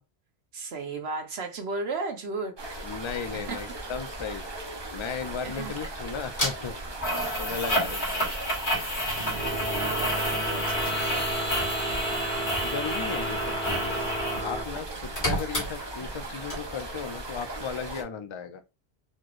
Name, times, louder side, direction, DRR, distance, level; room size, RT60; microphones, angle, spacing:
voice 1, 0.5-2.5 3.5-3.6 5.4-5.7 7.7-11.2 15.3-15.5, right 3 dB, 80° right, 1.2 m, -36 dB
sound 1, 2.6-18.0, right 2 dB, 30° right, 0.8 m, -38 dB
voice 2, 2.8-6.7 7.4-8.3 12.6-14.1 14.4-18.6, left 6 dB, 45° left, 0.4 m, -36 dB
sound 2, 6.4-6.5 7.0-14.5 14.8-16.2 16.5-16.6, equal, 85° left, 1.9 m, -30 dB
sound 3, 9.0-14.6, right 1 dB, 55° right, 1.3 m, -32 dB
4.2 x 3.0 x 2.5 m
omnidirectional pair, 1.0 m